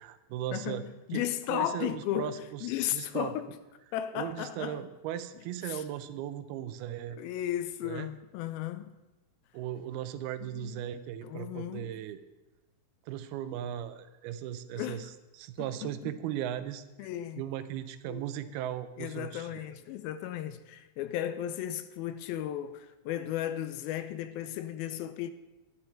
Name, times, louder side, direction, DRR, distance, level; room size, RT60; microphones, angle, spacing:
voice 1, 0.0-0.8 1.1-2.6 2.9-3.3 4.1-7.2 7.8-8.1 9.5-12.2 13.1-15.1 15.4-16.8 17.4-19.6, right 11 dB, 90° right, 2.6 m, -37 dB
voice 2, 0.5-3.5 3.9-4.8 5.7-5.8 7.1-8.9 10.4-10.8 11.2-12.1 14.8-15.1 15.6-16.1 17.0-17.4 18.1-18.3 19.0-25.3, left 12 dB, 85° left, 2.4 m, -35 dB
11.5 x 11.0 x 4.4 m
omnidirectional pair, 4.4 m